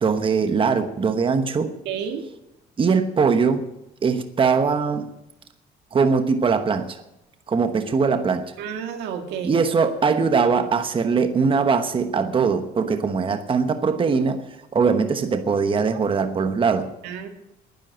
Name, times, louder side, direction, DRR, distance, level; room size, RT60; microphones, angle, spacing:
voice 1, 0.0-1.7 2.8-3.7 4.0-5.1 5.9-7.0 7.5-8.6 9.4-14.4 14.7-16.9, right 5 dB, 30° right, 9 dB, 1.1 m, -21 dB
voice 2, 1.9-2.2 8.6-9.6 17.0-17.3, right 7 dB, 90° right, 6 dB, 1.9 m, -30 dB
10.5 x 10.5 x 8.9 m, 0.87 s
cardioid pair, 110°, 17 cm